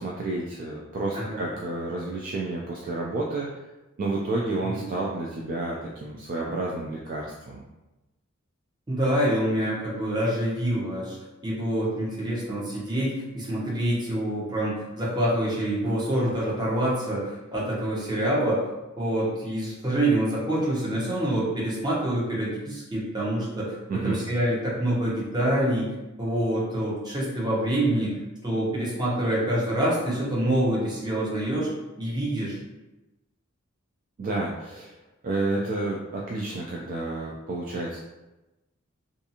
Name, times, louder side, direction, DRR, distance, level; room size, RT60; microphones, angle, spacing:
voice 1, 0.0-3.6 4.0-7.6 23.9-24.2 34.2-35.0 35.2-38.0, right 2 dB, 45° right, -3 dB, 0.3 m, -30 dB
voice 2, 1.1-1.4 4.7-4.8 8.9-11.2 11.4-18.6 19.0-25.9 26.2-28.1 28.4-31.7 32.0-32.6, right 1 dB, 20° right, -6 dB, 0.8 m, -26 dB
2.5 x 2.4 x 2.7 m, 1.0 s
head